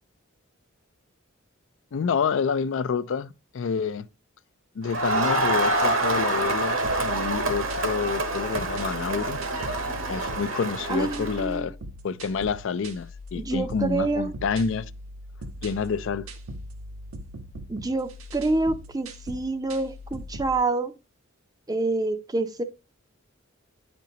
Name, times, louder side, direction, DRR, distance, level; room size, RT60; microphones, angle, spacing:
voice 1, 1.9-4.1 4.8-9.4 10.1-11.7 12.0-14.9 15.6-16.3, left 5 dB, 65° left, 0.4 m, -28 dB
Crowd, 4.9-11.5, right 2 dB, 70° right, 1.3 m, -26 dB
sound 1, 6.8-20.6, equal, 85° right, 1.0 m, -40 dB
voice 2, 10.9-11.7 13.3-14.3 17.7-20.9 21.7-22.6, right 3 dB, 20° right, 0.5 m, -27 dB
9.2 x 5.2 x 2.8 m
head